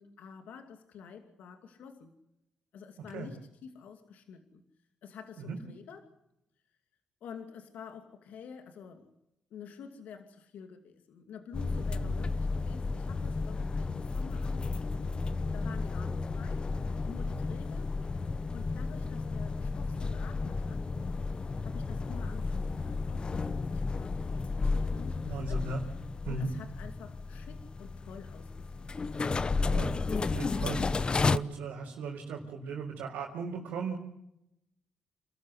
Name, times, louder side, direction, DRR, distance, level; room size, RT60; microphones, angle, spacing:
voice 1, 0.0-2.1 2.7-4.6 5.0-6.1 7.2-9.1 9.5-15.2 15.5-16.7 17.1-18.2 18.5-20.9 21.6-25.6 26.3-28.9, left 6 dB, 75° left, 6 dB, 2.5 m, -49 dB
sound 1, 11.5-31.4, left 3 dB, 35° left, 0.8 m, -33 dB
voice 2, 25.3-25.8 26.2-26.5 29.7-29.9 30.2-34.0, right 4 dB, 85° right, -4 dB, 4.5 m, -37 dB
28.5 x 13.5 x 8.1 m, 0.83 s
supercardioid pair, 60°, 3 cm